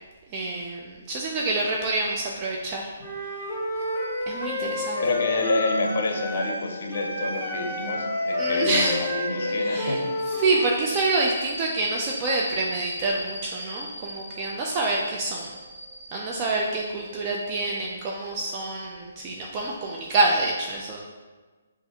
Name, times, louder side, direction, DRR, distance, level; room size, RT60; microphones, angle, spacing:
voice 1, 0.3-2.9 4.3-5.0 8.4-9.0 9.5-10.0 10.4-15.5 16.1-21.0, right 2 dB, 30° right, -2 dB, 0.4 m, -27 dB
Wind instrument woodwind instrument, 3.0-6.6 6.9-10.8, left 2 dB, ahead, 1.1 m, -29 dB
sound 1, 3.8-20.0, right 1 dB, 90° right, 0.7 m, -42 dB
voice 2, 5.0-10.1, left 2 dB, 60° left, 3 dB, 0.6 m, -28 dB
5.4 x 2.5 x 2.8 m, 1.3 s
hypercardioid pair, 150°, 0 cm